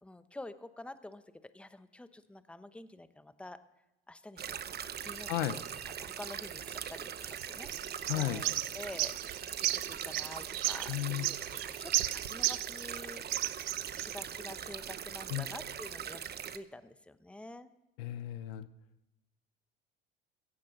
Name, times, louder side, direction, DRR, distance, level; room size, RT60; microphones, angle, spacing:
voice 1, 0.0-1.2 1.5-3.6 4.1-4.6 5.0-5.6 6.0-7.1 7.5-13.2 13.9-16.2 16.5-17.7, left 2 dB, 5° left, 12 dB, 0.9 m, -48 dB
snow thawing, 4.4-16.6, right 8 dB, 35° right, 0.9 m, -41 dB
sound 1, 5.0-13.2, right 8 dB, 65° right, 1.9 m, -54 dB
sound 2, 7.4-13.0 13.3-14.2, right 17 dB, 80° right, 0.6 m, -34 dB
voice 2, 8.1-8.4 10.9-11.3 15.3-15.5 18.0-18.7, left 14 dB, 75° left, 14 dB, 0.9 m, -34 dB
16.5 x 15.5 x 4.0 m, 0.94 s
hypercardioid pair, 75°, 29 cm